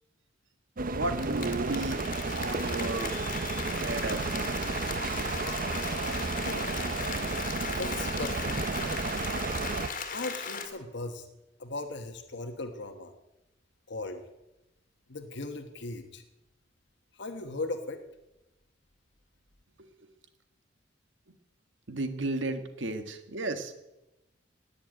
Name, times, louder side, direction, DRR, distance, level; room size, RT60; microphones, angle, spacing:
sound 1, 0.8-9.9, right 3 dB, 45° right, 0.7 m, -32 dB
voice 1, 0.9-3.1 3.7-4.2 21.9-23.7, right 2 dB, 75° right, 8 dB, 1.7 m, -34 dB
Applause, 1.0-10.7, left 5 dB, 45° left, 2.0 m, -37 dB
voice 2, 6.4-6.9 7.6-8.6 10.1-11.3 11.6-13.1 13.9-14.2 15.1-16.2 17.1-18.0, left 2 dB, 65° left, 6 dB, 1.3 m, -38 dB
18.5 x 7.1 x 9.1 m, 0.95 s
head